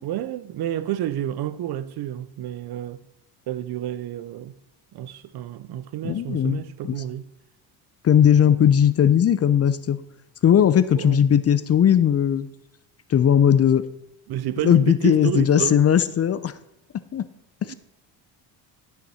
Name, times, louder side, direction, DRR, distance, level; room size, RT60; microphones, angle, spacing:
voice 1, 0.0-3.0 3.5-4.5 4.9-7.3 8.4-8.7 11.0-11.2 14.3-15.8 17.7-17.8, right 12 dB, 55° right, 0.7 m, -30 dB
voice 2, 6.0-6.6 6.9-7.0 8.0-10.0 10.4-12.5 13.1-13.9 14.6-16.6 17.1-17.3 17.6-17.7, left 9 dB, 30° left, 0.6 m, -18 dB
12.0 x 5.9 x 4.3 m
supercardioid pair, 80°, 47 cm